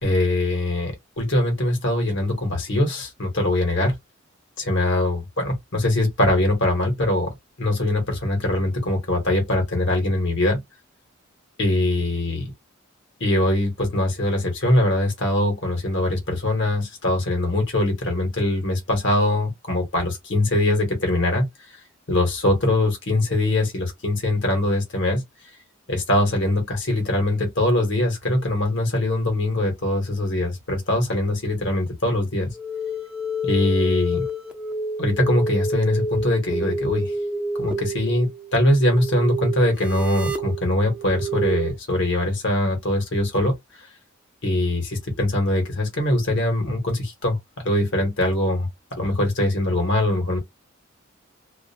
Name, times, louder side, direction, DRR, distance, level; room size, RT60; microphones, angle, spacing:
voice 1, 0.0-3.9 4.6-7.3 7.6-10.6 11.6-12.5 13.2-21.5 22.1-25.2 25.9-32.5 33.4-34.2 35.0-37.1 37.6-43.5 44.4-48.7 49.0-50.4, left 1 dB, 60° left, 1.1 m, -22 dB
sound 1, 32.5-41.7, right 1 dB, 5° right, 0.5 m, -29 dB
2.5 x 2.1 x 2.6 m
head